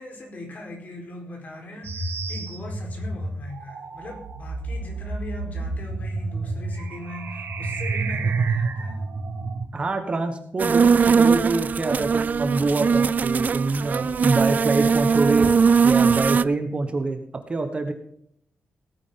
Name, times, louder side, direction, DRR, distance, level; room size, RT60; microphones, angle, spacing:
voice 1, 0.0-9.0, left 1 dB, 40° left, 2 dB, 4.4 m, -40 dB
sound 1, 1.8-9.7, right 3 dB, 70° right, 2.4 m, -29 dB
voice 2, 9.7-15.5 15.8-17.2 17.5-17.9, right 3 dB, 30° right, 6 dB, 1.4 m, -25 dB
sound 2, 10.6-16.4, right 6 dB, 45° right, 0.4 m, -20 dB
18.0 x 9.8 x 3.9 m, 0.71 s
wide cardioid pair, 170°, 4 cm